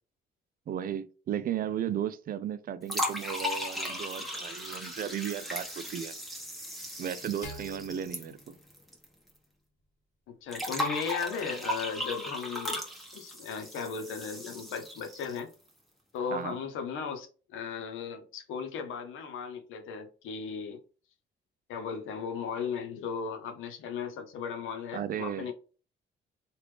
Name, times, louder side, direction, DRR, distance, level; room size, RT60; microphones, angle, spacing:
voice 1, 0.7-6.1 7.0-8.6 16.3-16.6 24.9-25.5, right 9 dB, 45° right, 0.4 m, -35 dB
sound 1, 2.9-9.0 9.3-9.4 10.5-15.5, left 1 dB, ahead, 1.1 m, -36 dB
sound 2, 7.4-9.8, left 1 dB, 40° left, 1.0 m, -48 dB
voice 2, 10.3-12.8 13.1-15.5 16.1-17.3 17.5-20.8 21.7-25.5, left 6 dB, 85° left, 0.8 m, -36 dB
3.4 x 2.4 x 3.2 m
cardioid pair, 90°, 20 cm